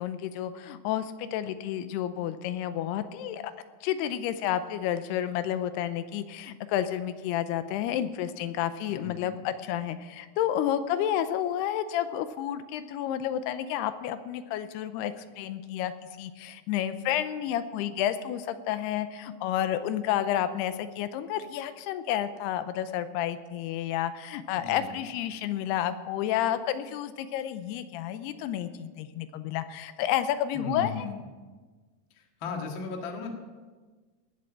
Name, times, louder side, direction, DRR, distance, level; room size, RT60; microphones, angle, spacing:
voice 1, 0.0-3.4 3.8-15.9 16.2-30.9, left 11 dB, 85° left, 12 dB, 2.7 m, -30 dB
voice 2, 8.9-9.5 24.5-25.0 30.5-31.2 32.1-33.3, left 4 dB, 45° left, 2 dB, 1.6 m, -37 dB
19.0 x 7.7 x 7.3 m, 1.4 s
omnidirectional pair, 4.7 m